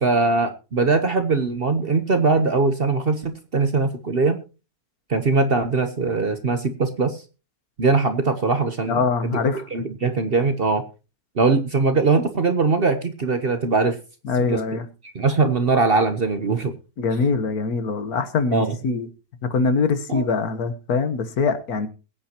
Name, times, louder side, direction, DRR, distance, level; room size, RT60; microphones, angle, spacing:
voice 1, 0.0-4.4 5.1-7.2 7.8-9.4 9.7-10.8 11.4-14.0 14.4-14.6 15.0-16.7 18.5-18.8 20.1-20.2, right 4 dB, 45° right, 8 dB, 1.0 m, -21 dB
voice 2, 8.9-9.6 14.3-14.8 17.0-19.1 19.4-21.9, left 4 dB, 65° left, 10 dB, 1.6 m, -23 dB
22.0 x 8.8 x 2.9 m, 0.32 s
omnidirectional pair, 1.7 m